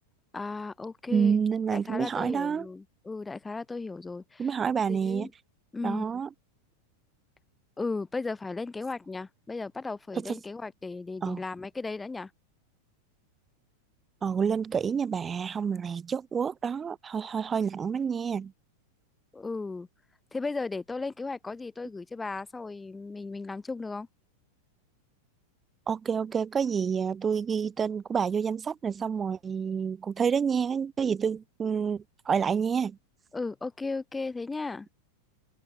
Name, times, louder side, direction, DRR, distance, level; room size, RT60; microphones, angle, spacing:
voice 1, 0.3-1.4 1.7-4.5 4.9-5.3 5.7-6.1 7.8-12.3 19.3-19.9 20.3-24.1 33.3-34.9, left 3 dB, 10° left, 2.4 m, -35 dB
voice 2, 1.1-2.7 4.4-5.3 5.8-6.3 10.1-10.4 11.2-11.4 14.2-18.5 25.9-33.0, right 6 dB, 20° right, 0.7 m, -28 dB
open air
figure-of-eight pair, 90°, 0 cm